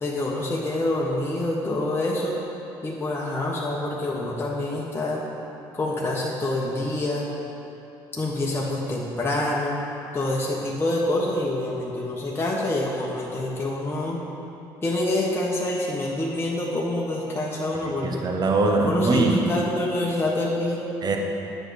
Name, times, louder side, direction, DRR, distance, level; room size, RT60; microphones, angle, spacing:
voice 1, 0.0-2.4 2.8-5.2 5.7-7.3 8.2-9.8 10.1-14.2 14.8-18.2 18.8-20.8, left 1 dB, 25° left, -4 dB, 1.4 m, -26 dB
voice 2, 17.8-19.4 21.0-21.2, right 3 dB, 40° right, 2 dB, 1.0 m, -22 dB
8.7 x 6.6 x 4.9 m, 2.9 s
supercardioid pair, 65°, 10 cm